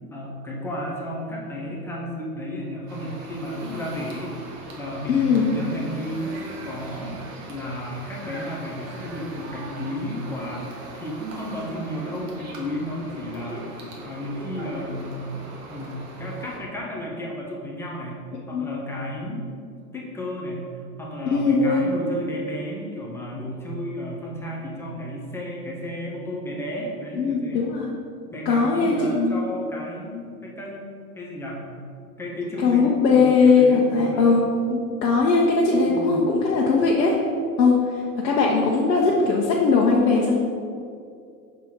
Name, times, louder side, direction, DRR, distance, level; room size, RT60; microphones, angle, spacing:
voice 1, 0.1-4.3 4.8-15.3 15.7-19.5 19.9-20.7 21.0-27.6 28.3-31.8 32.2-34.4 35.9-36.3, equal, 5° left, -3 dB, 0.4 m, -33 dB
sound 1, 2.9-16.6, right 2 dB, 50° right, 1.4 m, -40 dB
voice 2, 5.1-5.5 18.5-18.7 21.3-21.8 27.2-27.9 28.5-29.4 32.6-34.4 34.7-37.1 37.6-37.8 38.2-40.4, left 4 dB, 80° left, -3 dB, 0.9 m, -19 dB
6.0 x 3.6 x 4.4 m, 2.3 s
hypercardioid pair, 115°, 49 cm